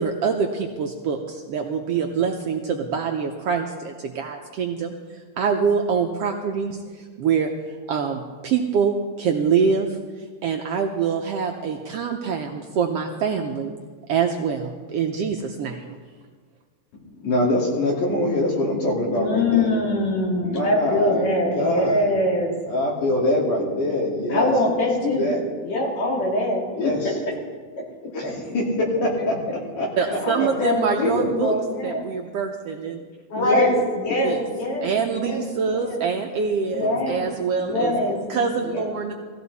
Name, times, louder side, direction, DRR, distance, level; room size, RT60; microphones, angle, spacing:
voice 1, 0.0-4.9 5.4-7.5 7.9-10.0 10.4-13.7 14.1-15.9 30.0-31.5 31.8-33.0 33.4-33.6 34.2-34.4 34.8-37.9 38.3-39.1, right 6 dB, 70° right, 2 dB, 1.5 m, -25 dB
voice 2, 16.9-19.7 20.4-21.3 21.5-22.0 22.7-24.5 25.0-25.4 26.7-27.1 28.1-29.4 29.8-30.5 31.0-31.3 33.3-33.7 34.1-34.2 36.8-37.0 37.7-38.2, left 1 dB, 80° left, -2 dB, 4.2 m, -24 dB
voice 3, 19.1-22.5 24.3-25.3 25.6-26.9 28.2-28.5 30.2-32.0 33.3-36.0 36.7-37.3 37.6-38.2 38.6-38.8, left 1 dB, 60° left, -3 dB, 4.2 m, -24 dB
18.5 x 14.5 x 4.1 m, 1.6 s
omnidirectional pair, 3.5 m